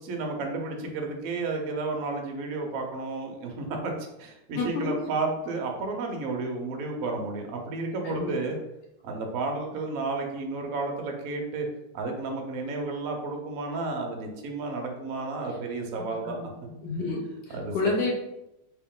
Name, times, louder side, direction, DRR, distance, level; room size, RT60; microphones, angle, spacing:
voice 1, 0.0-3.9 4.2-8.6 9.0-11.7 11.9-16.8 17.5-17.7, right 3 dB, 70° right, 2 dB, 0.8 m, -32 dB
voice 2, 4.6-5.1 8.0-8.3 16.2-16.4 16.8-18.1, left 3 dB, 60° left, -1 dB, 1.2 m, -29 dB
3.5 x 2.9 x 3.6 m, 0.88 s
omnidirectional pair, 2.3 m